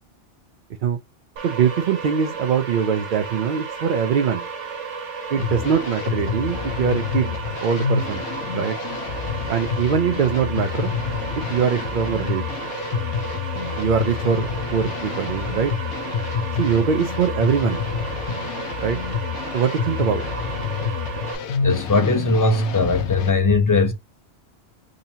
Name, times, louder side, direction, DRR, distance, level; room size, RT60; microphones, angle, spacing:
voice 1, 1.4-4.5 5.3-8.3 8.5-8.8 9.5-10.9 11.4-12.4 13.8-15.7 16.6-17.8 18.8-19.0 19.5-20.2, right 7 dB, 55° right, 0.5 m, -22 dB
sound 1, 1.4-21.4, right 6 dB, 70° right, 1.2 m, -33 dB
sound 2, 5.4-23.3, left 6 dB, 70° left, 1.0 m, -28 dB
voice 2, 21.6-23.9, left 3 dB, 25° left, 0.4 m, -19 dB
3.8 x 2.8 x 2.6 m
omnidirectional pair, 1.2 m